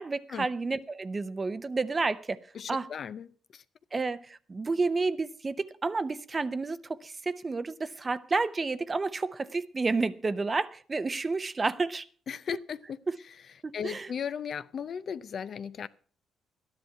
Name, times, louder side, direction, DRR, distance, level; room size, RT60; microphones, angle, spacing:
voice 1, 0.0-2.4 2.7-2.9 3.9-12.1 13.1-13.2 13.6-14.1, right 3 dB, 30° right, 0.7 m, -30 dB
voice 2, 2.6-3.3 12.3-13.0 13.7-15.9, left 7 dB, 55° left, 0.5 m, -36 dB
12.0 x 10.5 x 5.7 m
cardioid pair, 90°, 0 cm